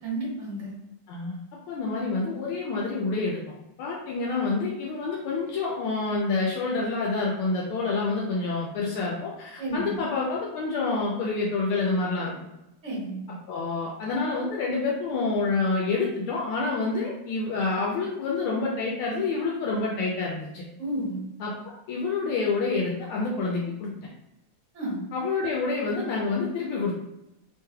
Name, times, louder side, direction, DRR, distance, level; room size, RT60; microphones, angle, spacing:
voice 1, 0.0-0.7 9.6-10.0 12.8-13.2 20.8-21.2 24.7-25.0, right 1 dB, 40° right, -7 dB, 1.5 m, -31 dB
voice 2, 1.1-1.4 1.7-3.4 3.8-12.3 13.5-20.6 21.4-21.5 21.9-23.9 25.1-26.9, left 3 dB, 80° left, -3 dB, 1.4 m, -27 dB
3.6 x 3.2 x 2.2 m, 0.91 s
omnidirectional pair, 2.4 m